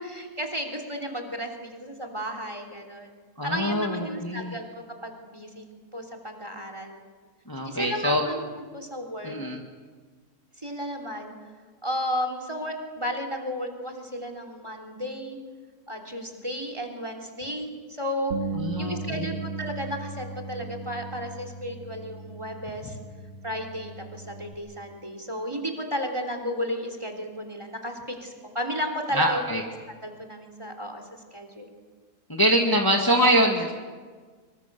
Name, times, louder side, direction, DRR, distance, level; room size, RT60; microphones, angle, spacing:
voice 1, 0.0-3.1 3.4-5.6 5.9-7.0 7.6-9.3 10.6-11.3 11.8-15.4 15.9-18.3 18.8-23.0 23.4-29.4 30.0-31.0 31.3-31.7, equal, 20° right, 5 dB, 3.4 m, -33 dB
voice 2, 3.4-4.6 7.5-8.2 9.2-9.6 18.5-19.3 29.1-29.6 32.3-33.8, equal, 15° left, 1 dB, 1.9 m, -24 dB
Bass guitar, 18.3-24.5, right 4 dB, 65° right, 1.9 m, -37 dB
25.0 x 24.5 x 6.9 m, 1.5 s
omnidirectional pair, 1.6 m